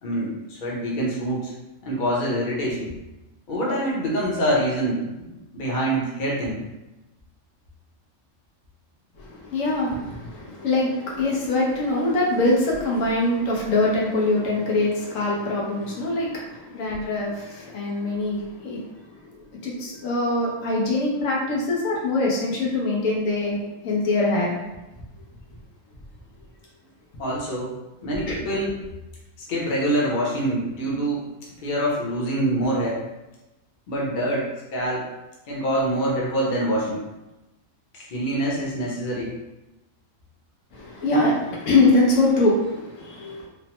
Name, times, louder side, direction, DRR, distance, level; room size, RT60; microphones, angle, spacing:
voice 1, 0.0-1.5 1.8-2.9 3.5-5.3 5.5-6.6 27.2-28.7 29.5-31.3 31.6-33.0 33.9-35.1 35.5-37.1 37.9-39.4, right 1 dB, 45° left, -5 dB, 0.8 m, -25 dB
voice 2, 9.3-18.8 19.6-24.6 28.3-28.4 40.7-43.5, left 2 dB, 85° left, -3 dB, 1.2 m, -23 dB
3.2 x 2.1 x 2.9 m, 0.99 s
omnidirectional pair, 1.3 m